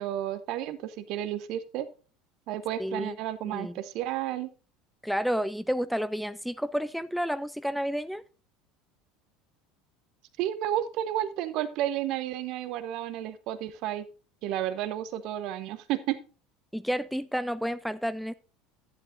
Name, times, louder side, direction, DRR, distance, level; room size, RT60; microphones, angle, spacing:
voice 1, 0.0-1.9 2.5-4.5 10.4-14.0 14.4-16.2, right 12 dB, 55° right, 1.0 m, -32 dB
voice 2, 2.8-3.2 3.4-3.7 5.0-8.2 16.7-18.3, equal, ahead, 0.4 m, -30 dB
11.5 x 10.5 x 2.6 m
figure-of-eight pair, 70°, 0 cm